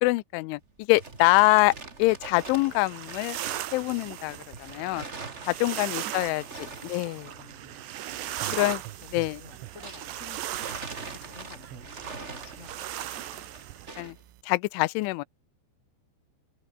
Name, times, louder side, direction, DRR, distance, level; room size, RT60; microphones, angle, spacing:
voice 1, 0.0-1.7 2.0-3.4 3.7-5.0 5.4-6.4 6.8-7.3 8.5-8.8 9.1-9.4 14.0-14.2 14.4-15.2, left 22 dB, 90° left, 3.1 m, -24 dB
sound 1, 0.6-10.2 10.5-14.2, right 3 dB, 25° right, 1.5 m, -44 dB
sound 2, 2.4-13.9, right 13 dB, 70° right, 3.7 m, -38 dB
voice 2, 5.7-7.9 8.3-8.7 9.0-10.4 11.1-13.5 14.0-14.2, left 6 dB, 40° left, 1.0 m, -53 dB
sound 3, 8.1-14.4, right 15 dB, 90° right, 3.6 m, -49 dB
omnidirectional pair, 5.4 m